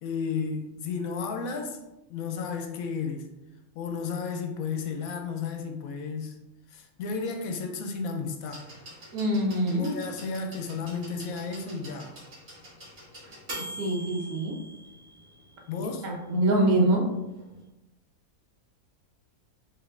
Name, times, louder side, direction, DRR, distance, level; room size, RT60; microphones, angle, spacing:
voice 1, 0.0-1.8 2.1-3.3 3.7-6.4 6.7-8.7 9.7-12.1 15.7-16.1, left 5 dB, 75° left, 4 dB, 1.0 m, -33 dB
sound 1, 8.5-16.3 17.4-17.5, right 1 dB, 50° right, 2.0 m, -44 dB
voice 2, 9.1-9.9 13.8-14.6 16.0-17.1, right 1 dB, 75° right, 0 dB, 1.2 m, -24 dB
5.0 x 2.9 x 2.4 m, 0.99 s
omnidirectional pair, 1.6 m